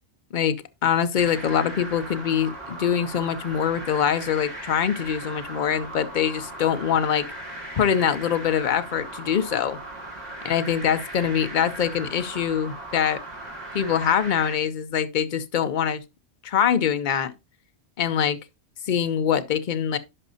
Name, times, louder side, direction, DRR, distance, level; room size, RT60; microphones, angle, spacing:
voice 1, 0.3-7.3 7.7-9.8 10.4-13.2 13.7-16.0 16.4-17.3 18.0-18.4 18.9-20.0, left 8 dB, 50° left, 0.7 m, -24 dB
sound 1, 1.2-14.5, right 1 dB, 35° right, 2.4 m, -38 dB
11.0 x 5.3 x 2.7 m
omnidirectional pair, 1.2 m